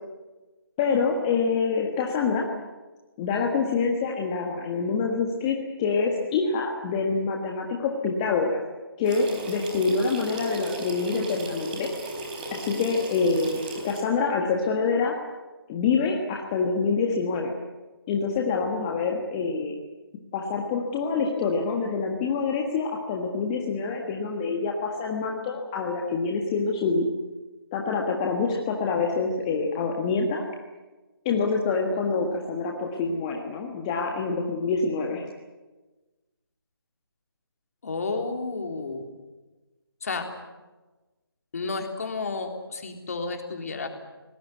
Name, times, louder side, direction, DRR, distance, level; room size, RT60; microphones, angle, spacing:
voice 1, 0.8-2.4 3.2-8.6 9.0-12.1 12.5-15.1 15.7-17.5 18.1-19.7 20.3-27.1 27.7-30.4 31.2-35.2, left 4 dB, 15° left, 0 dB, 1.6 m, -26 dB
sound 1, 9.0-14.0, right 1 dB, 20° right, 4.1 m, -36 dB
voice 2, 37.8-39.1 40.0-40.3 41.5-43.9, left 3 dB, 40° left, 4 dB, 3.5 m, -31 dB
24.5 x 19.5 x 9.4 m, 1.2 s
figure-of-eight pair, 155°, 13 cm